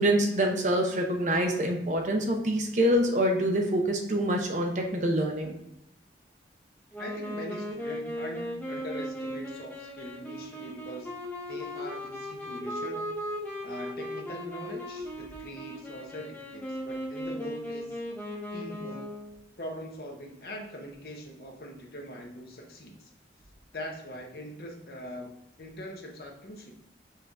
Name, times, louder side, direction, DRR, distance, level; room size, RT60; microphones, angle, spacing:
voice 1, 0.0-5.5, right 1 dB, 40° right, 2 dB, 0.7 m, -26 dB
Wind instrument woodwind instrument, 6.9-19.4, equal, 10° left, 0.8 m, -37 dB
voice 2, 7.0-11.1 11.5-13.1 13.6-18.0 18.5-19.1 19.6-23.1 23.7-25.3 25.6-26.7, equal, 60° left, 0 dB, 1.0 m, -42 dB
5.5 x 2.7 x 3.5 m, 0.85 s
head